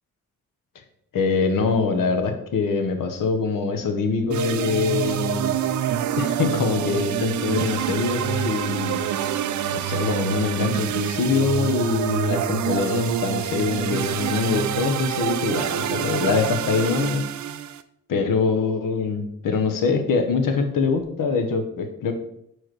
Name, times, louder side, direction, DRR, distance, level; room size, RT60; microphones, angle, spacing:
voice 1, 1.1-5.5 6.2-9.2 9.7-17.3 18.1-22.1, left 4 dB, 75° left, 5 dB, 1.0 m, -24 dB
sound 1, 4.3-17.8, right 10 dB, 60° right, 0.5 m, -26 dB
4.7 x 4.5 x 4.7 m, 0.75 s
cardioid pair, 70°, 33 cm